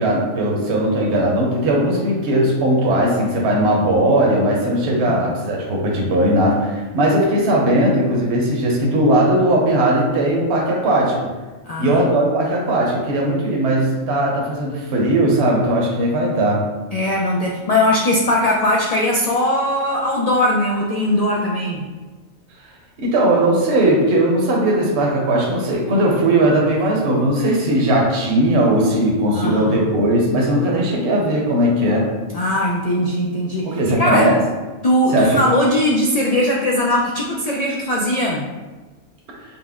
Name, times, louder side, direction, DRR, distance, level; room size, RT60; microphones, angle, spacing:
voice 1, 0.0-11.3 11.8-16.6 23.0-32.1 33.6-34.4 35.1-35.4, right 1 dB, 60° right, -2 dB, 1.0 m, -18 dB
voice 2, 11.7-12.1 12.5-12.6 16.9-21.8 29.3-29.9 32.3-34.3 34.8-38.5, left 1 dB, 75° left, -2 dB, 0.3 m, -20 dB
5.7 x 2.1 x 3.5 m, 1.2 s
omnidirectional pair, 1.3 m